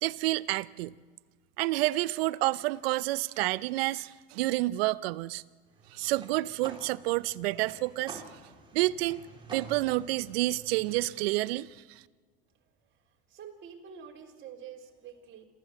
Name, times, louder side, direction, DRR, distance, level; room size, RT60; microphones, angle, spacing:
voice 1, 0.0-0.9 1.6-5.4 5.9-8.2 8.7-9.2 9.5-12.0, right 18 dB, 75° right, 0.7 m, -29 dB
sound 1, 5.7-11.2, right 4 dB, 15° right, 4.1 m, -48 dB
voice 2, 13.3-15.4, right 7 dB, 40° right, 4.1 m, -47 dB
27.0 x 15.0 x 7.7 m
supercardioid pair, 100°, 30 cm